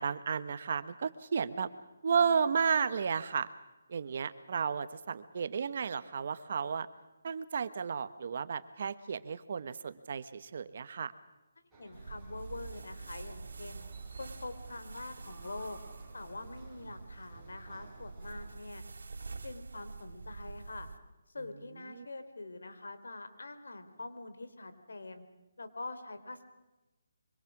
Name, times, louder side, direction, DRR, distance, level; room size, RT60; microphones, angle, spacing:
voice 1, 0.0-1.7 2.0-3.5 3.9-6.9 7.2-11.1 21.9-22.0, right 6 dB, 45° right, 13 dB, 1.2 m, -33 dB
sound 1, 11.7-18.6, right 2 dB, 5° right, 4.8 m, -59 dB
voice 2, 11.8-13.8 14.2-15.8 16.1-18.8 19.2-20.9 21.3-25.2 25.6-26.4, left 2 dB, 90° left, 9 dB, 3.3 m, -45 dB
sound 2, 11.9-21.0, right 4 dB, 75° right, 2.8 m, -46 dB
25.0 x 24.5 x 6.1 m, 1.0 s
hypercardioid pair, 170°, 0 cm